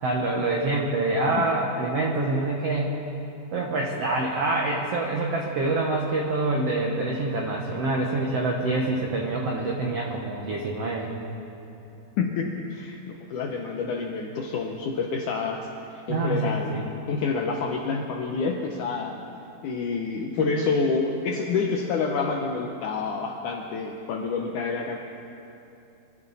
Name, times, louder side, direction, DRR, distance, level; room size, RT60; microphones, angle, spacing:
voice 1, 0.0-3.0 3.5-11.1 16.1-16.8 20.4-20.7, right 2 dB, 75° right, -1 dB, 1.4 m, -26 dB
voice 2, 12.2-19.2 19.6-25.0, left 4 dB, 75° left, 2 dB, 1.8 m, -28 dB
24.5 x 14.0 x 4.1 m, 2.9 s
omnidirectional pair, 4.6 m